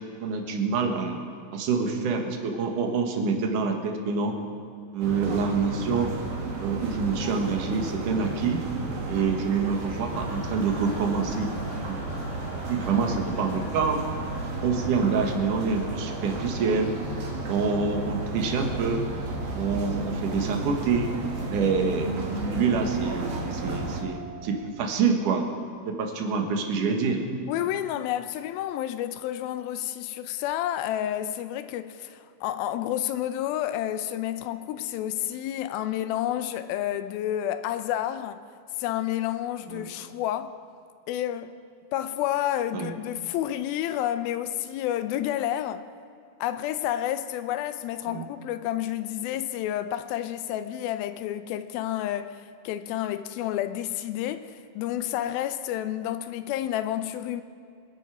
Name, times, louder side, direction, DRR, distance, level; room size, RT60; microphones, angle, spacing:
voice 1, 0.2-1.2 1.5-4.4 4.9-6.1 6.6-8.6 9.1-11.5 11.9-12.0 12.7-14.0 14.6-16.9 17.5-19.1 19.5-21.1 21.5-22.1 22.5-25.5 25.9-27.2 39.7-39.8 42.7-42.9 48.1-48.2, right 5 dB, 65° right, 2.9 m, -26 dB
sound 1, 5.0-24.0, right 2 dB, 85° right, 4.0 m, -33 dB
sound 2, 10.1-24.7, equal, 35° left, 1.2 m, -45 dB
voice 2, 27.5-38.4 38.8-40.6 41.1-41.5 41.9-45.8 46.4-57.4, left 12 dB, 90° left, 2.5 m, -30 dB
26.5 x 11.0 x 4.9 m
omnidirectional pair, 4.2 m